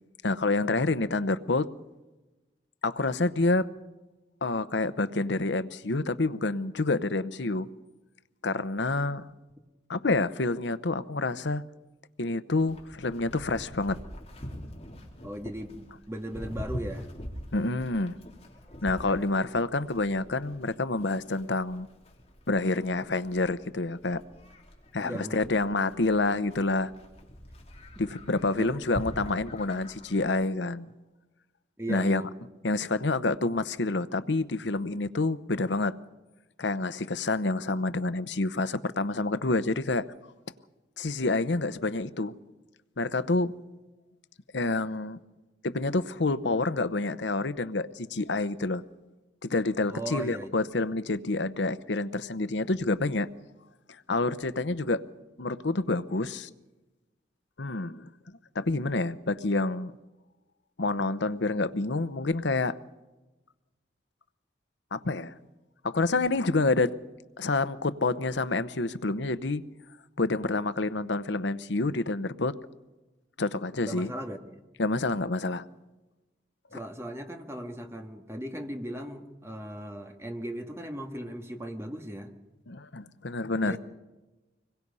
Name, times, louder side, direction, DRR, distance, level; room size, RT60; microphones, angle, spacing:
voice 1, 0.2-1.7 2.8-3.7 4.4-7.7 8.4-9.3 9.9-11.6 12.2-14.0 17.5-18.2 18.8-21.9 22.5-24.2 24.9-26.9 28.0-30.9 31.9-32.2 32.6-36.0 36.6-40.1 41.0-42.3 43.0-43.5 44.5-45.2 45.6-48.8 49.4-53.3 54.1-55.0 55.4-56.5 57.6-58.1 58.5-59.9 60.8-62.8 64.9-65.3 65.8-66.9 67.4-69.6 70.2-72.5 73.4-74.1 74.8-75.7 76.7-76.8 82.7-83.8, left 3 dB, 85° left, 0.9 m, -28 dB
Livestock farm animals working animals, 12.6-30.3, equal, 35° left, 3.5 m, -44 dB
voice 2, 15.2-17.1 19.0-19.3 25.0-25.5 28.6-28.7 31.8-32.3 49.9-50.5 73.8-74.6 76.7-82.3 83.6-83.8, right 1 dB, 15° right, 1.8 m, -37 dB
25.5 x 21.5 x 5.5 m
head